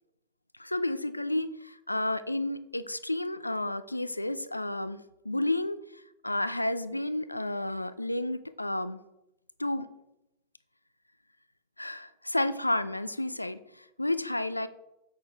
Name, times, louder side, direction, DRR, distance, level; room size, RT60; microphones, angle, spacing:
voice 1, 0.5-9.0 9.6-9.9 11.8-14.7, left 1 dB, 85° left, 14 dB, 0.4 m, -31 dB
7.7 x 6.4 x 3.5 m, 0.87 s
figure-of-eight pair, 90°, 0 cm